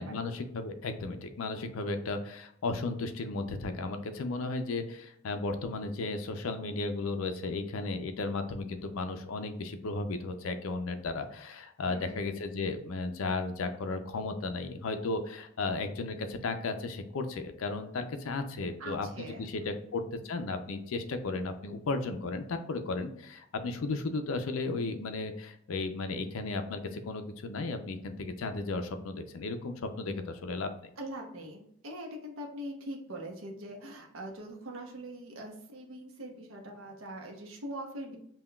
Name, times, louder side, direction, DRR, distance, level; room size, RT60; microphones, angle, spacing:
voice 1, 0.0-30.9, left 3 dB, 80° left, 7 dB, 0.5 m, -35 dB
voice 2, 11.9-12.2 18.8-19.8 31.0-38.2, right 1 dB, 75° right, 1 dB, 0.7 m, -42 dB
5.5 x 2.3 x 2.2 m, 0.71 s
head